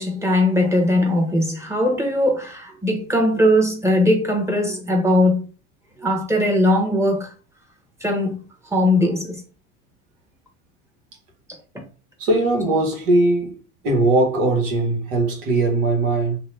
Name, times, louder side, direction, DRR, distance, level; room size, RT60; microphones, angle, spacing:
voice 1, 0.0-5.5 6.0-7.3 8.0-9.4, left 1 dB, 10° right, 1.0 m, -20 dB
voice 2, 12.2-13.5 13.8-16.4, right 2 dB, 70° right, 1.3 m, -19 dB
2.8 x 2.2 x 3.3 m
supercardioid pair, 105°, 34 cm